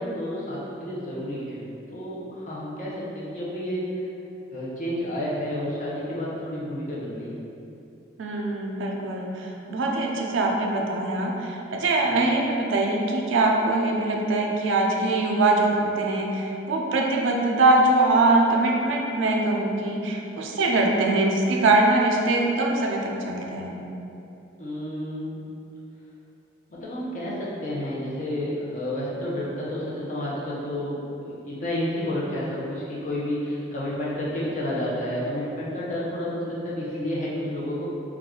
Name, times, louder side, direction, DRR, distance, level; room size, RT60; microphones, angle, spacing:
voice 1, 0.0-3.9 4.5-7.4 12.1-12.2 24.6-25.4 26.7-37.9, left 1 dB, 40° left, -7 dB, 0.5 m, -30 dB
voice 2, 8.2-23.8, right 2 dB, 85° right, 0 dB, 0.4 m, -23 dB
2.4 x 2.2 x 3.6 m, 2.8 s
head